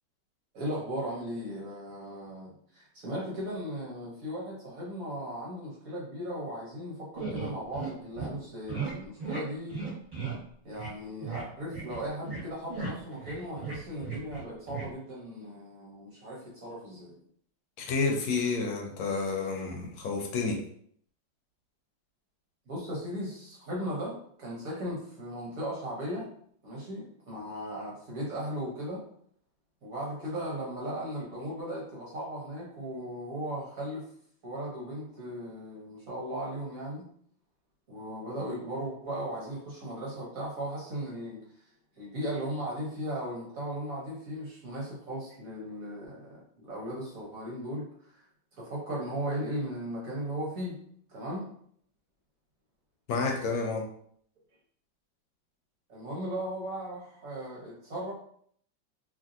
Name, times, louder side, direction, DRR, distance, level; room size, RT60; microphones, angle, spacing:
voice 1, 0.5-9.8 10.6-17.2 22.7-26.3 26.6-29.0 29.8-34.0 34.4-37.0 37.9-41.5 42.0-48.3 48.5-50.8 51.1-51.5 55.9-58.1, equal, 55° right, -5 dB, 1.1 m, -37 dB
sound 1, 7.2-7.9 8.2-8.3 8.7-8.9 9.2-9.4 9.7-10.4 10.7-10.9 11.2-11.4 11.7-12.4 12.7-14.4 14.7-14.9, right 5 dB, 30° right, 1.3 m, -36 dB
voice 2, 17.8-20.6 53.1-53.9, left 4 dB, 80° left, 1 dB, 1.4 m, -30 dB
3.1 x 2.6 x 2.5 m, 0.63 s
omnidirectional pair, 2.1 m